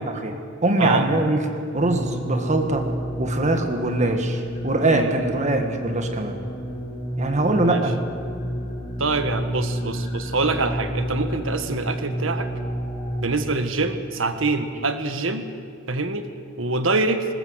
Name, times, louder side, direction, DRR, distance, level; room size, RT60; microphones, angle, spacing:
voice 1, 0.6-1.4 1.7-2.9 3.2-6.4 7.2-7.9, right 2 dB, 35° right, 5 dB, 1.7 m, -22 dB
sound 1, 1.7-13.2, equal, 45° left, 5.6 m, -30 dB
voice 2, 7.6-7.9 9.0-12.5 13.2-15.4 15.9-17.2, right 3 dB, 75° right, 8 dB, 1.6 m, -25 dB
20.5 x 19.5 x 8.1 m, 2.3 s
head